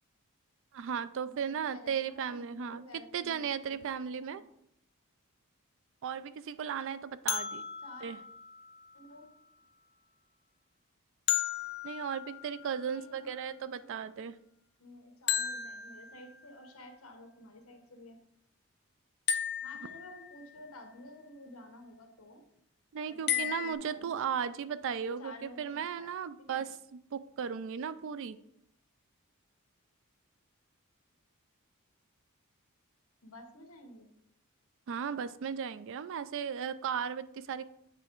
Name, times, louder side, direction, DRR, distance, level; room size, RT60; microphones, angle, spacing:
voice 1, 0.7-2.8 3.1-4.4 6.0-7.6 8.0-8.2 11.8-14.4 22.9-26.7 27.1-28.4 34.9-37.6, right 7 dB, 60° right, 14 dB, 0.3 m, -36 dB
voice 2, 1.3-4.4 7.8-8.1 8.9-9.3 12.9-14.2 14.8-18.2 19.6-22.4 23.1-24.2 25.0-26.1 26.4-26.6 33.2-34.1, left 1 dB, 70° left, 4 dB, 1.1 m, -52 dB
sound 1, 7.3-9.2 11.3-13.1 15.3-16.7 19.3-20.6 23.3-23.7, left 10 dB, 50° left, 0.5 m, -35 dB
8.3 x 3.4 x 4.5 m, 0.74 s
head